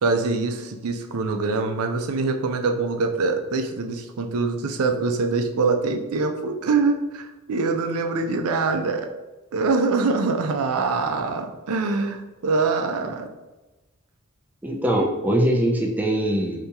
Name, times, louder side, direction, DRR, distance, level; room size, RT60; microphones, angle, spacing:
voice 1, 0.0-9.1 9.5-13.3, right 4 dB, 85° right, 5 dB, 0.5 m, -24 dB
voice 2, 14.6-16.7, right 1 dB, 10° right, 0 dB, 0.3 m, -22 dB
2.8 x 2.8 x 3.5 m, 1.1 s
head